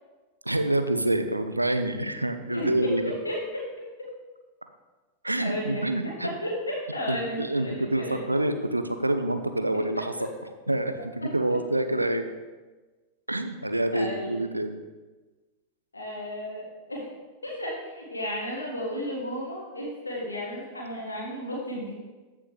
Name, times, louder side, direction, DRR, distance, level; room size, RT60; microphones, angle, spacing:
voice 1, 0.4-3.0 5.2-6.3 7.1-10.1 10.7-12.2 13.3-14.8, right 1 dB, 85° right, 8 dB, 0.6 m, -27 dB
voice 2, 2.5-3.6 5.4-8.2 9.9-10.0 13.9-14.3 15.9-17.1 17.4-21.9, left 1 dB, 80° left, -4 dB, 1.7 m, -33 dB
14.5 x 5.5 x 3.2 m, 1.3 s
figure-of-eight pair, 90°, 0 cm